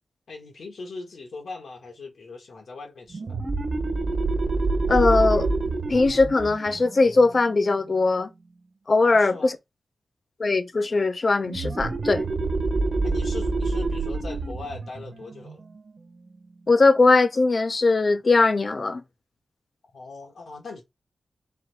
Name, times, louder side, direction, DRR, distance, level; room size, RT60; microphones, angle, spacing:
voice 1, 0.3-3.4 9.0-9.6 13.0-15.6 19.9-20.8, left 3 dB, 70° left, 1.4 m, -39 dB
sound 1, 3.1-8.4 11.4-16.7, right 3 dB, 55° right, 1.3 m, -28 dB
voice 2, 4.9-5.5 5.9-8.3 8.9-9.6 10.4-12.2 16.7-19.0, left 3 dB, 35° left, 0.5 m, -20 dB
4.2 x 2.7 x 4.0 m
wide cardioid pair, 165°, 0 cm